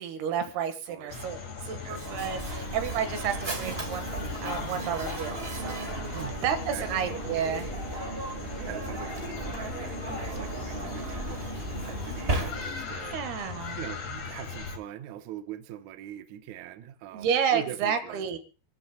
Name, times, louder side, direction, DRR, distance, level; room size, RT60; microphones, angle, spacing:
voice 1, 0.0-4.1 4.4-5.9 6.4-7.8 13.0-13.8 17.1-18.4, right 7 dB, 90° right, 8 dB, 3.5 m, -31 dB
sound 1, 1.1-14.8, left 5 dB, 45° left, 2.8 m, -40 dB
sound 2, 1.7-11.0, left 2 dB, 65° left, 4.4 m, -54 dB
voice 2, 1.7-2.0 6.1-6.4 6.7-6.9 8.6-13.5 13.8-18.4, right 12 dB, 70° right, 9 dB, 1.9 m, -42 dB
Mechanisms, 1.8-13.0, right 2 dB, 45° right, 0.7 m, -35 dB
27.5 x 13.5 x 2.2 m, 0.34 s
omnidirectional pair, 4.4 m